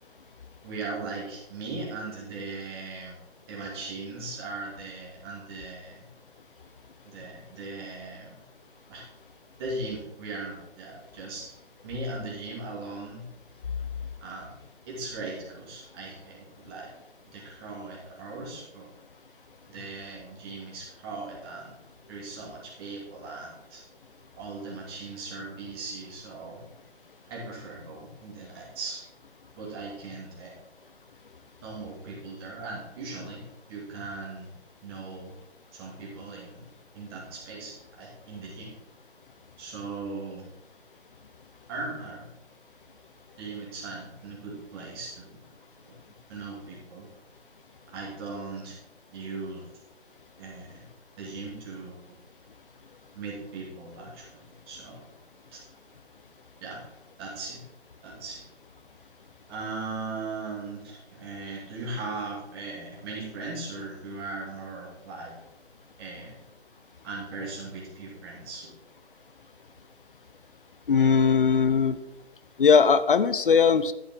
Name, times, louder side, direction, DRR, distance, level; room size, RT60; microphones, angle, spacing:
voice 1, 0.6-3.2 3.5-6.0 7.0-8.3 8.9-9.0 9.6-11.5 11.8-13.2 14.2-14.6 14.8-16.9 17.3-18.9 19.7-21.8 22.1-23.8 24.4-26.6 27.3-29.0 29.6-30.5 31.6-33.4 33.7-34.5 34.8-35.3 35.7-36.7 36.9-38.7 39.6-40.5 41.7-42.3 43.4-45.4 45.9-46.0 46.3-47.1 47.9-48.8 49.1-49.7 50.4-50.8 51.2-52.2 53.1-55.0 55.5-55.6 56.6-56.8 57.2-57.6 58.0-58.4 59.5-65.3 66.0-66.3 67.0-68.7, right 3 dB, 20° right, -4 dB, 2.7 m, -38 dB
voice 2, 70.9-72.0 72.6-73.9, left 6 dB, 50° left, 14 dB, 0.6 m, -19 dB
11.0 x 7.8 x 3.8 m, 0.94 s
figure-of-eight pair, 145°, 33 cm